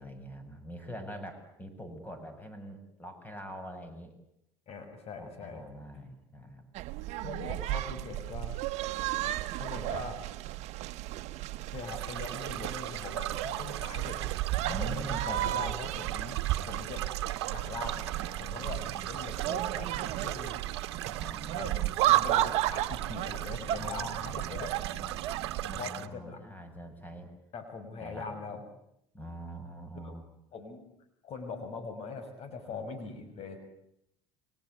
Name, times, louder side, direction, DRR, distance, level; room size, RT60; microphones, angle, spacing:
voice 1, 0.0-4.1 5.2-6.6 14.6-15.9 16.6-16.7 18.0-19.2 21.0-21.9 23.8-25.2 25.7-27.3 28.0-28.4 29.1-30.2 32.7-32.8, equal, 10° left, 8 dB, 7.4 m, -44 dB
voice 2, 4.7-5.6 7.2-8.6 9.5-10.2 11.7-14.3 14.7-16.4 16.6-17.0 17.5-18.1 18.4-20.6 21.5-24.7 25.8-26.5 27.5-28.6 29.9-30.1 30.5-30.9 31.2-33.6, left 4 dB, 50° left, 8 dB, 5.9 m, -42 dB
sound 1, 6.7-25.8, right 15 dB, 55° right, 1.3 m, -33 dB
sound 2, 11.9-26.1, right 14 dB, 80° right, 1.3 m, -39 dB
29.5 x 24.0 x 8.3 m, 0.78 s
hypercardioid pair, 80°, 14 cm